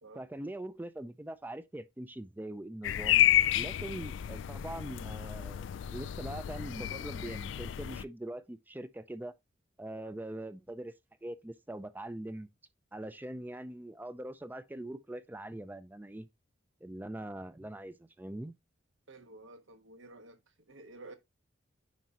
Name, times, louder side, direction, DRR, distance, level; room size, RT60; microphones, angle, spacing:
voice 1, 0.2-3.2 3.5-9.4 9.8-10.9 11.2-12.5 12.9-16.3 16.8-18.5, right 1 dB, 10° right, 0.4 m, -42 dB
sound 1, 2.8-8.0, left 12 dB, 65° left, 0.3 m, -30 dB
voice 2, 19.1-20.4 20.7-21.2, right 2 dB, 80° right, 1.3 m, -51 dB
9.3 x 5.1 x 2.8 m
head